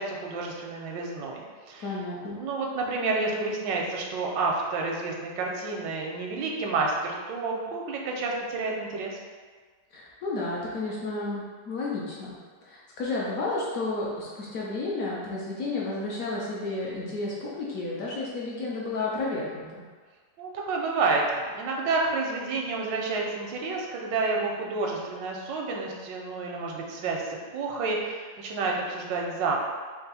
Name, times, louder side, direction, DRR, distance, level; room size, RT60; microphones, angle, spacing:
voice 1, 0.0-1.9 2.2-9.2 20.4-29.6, right 3 dB, 85° right, 0 dB, 1.3 m, -30 dB
voice 2, 1.8-2.4 9.9-12.4 12.6-19.8, left 2 dB, 65° left, -5 dB, 0.9 m, -32 dB
3.5 x 2.4 x 4.0 m, 1.5 s
omnidirectional pair, 1.9 m